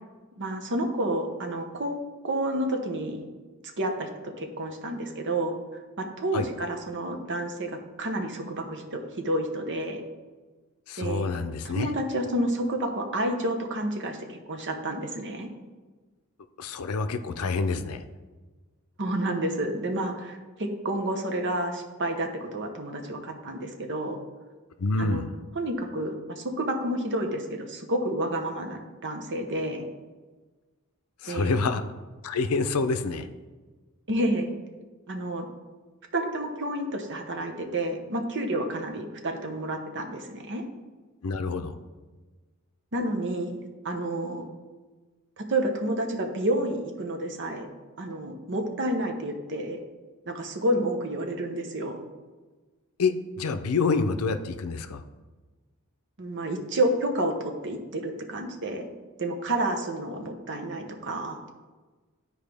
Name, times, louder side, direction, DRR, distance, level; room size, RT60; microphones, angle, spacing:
voice 1, 0.4-2.0 2.2-3.2 3.8-5.5 6.0-10.0 11.0-11.3 11.6-15.5 19.0-24.2 25.0-25.2 25.5-29.9 31.3-31.6 34.1-34.5 35.1-35.5 36.1-40.6 42.9-43.5 43.8-44.4 45.4-47.7 48.0-49.8 50.3-52.0 56.2-58.9 59.2-61.4, right 1 dB, 55° right, 4 dB, 1.0 m, -30 dB
voice 2, 10.9-11.9 16.6-18.0 24.8-25.3 31.2-31.8 32.2-33.3 41.2-41.7 53.0-55.0, left 4 dB, 80° left, 10 dB, 0.6 m, -27 dB
12.5 x 4.6 x 3.5 m, 1.3 s
head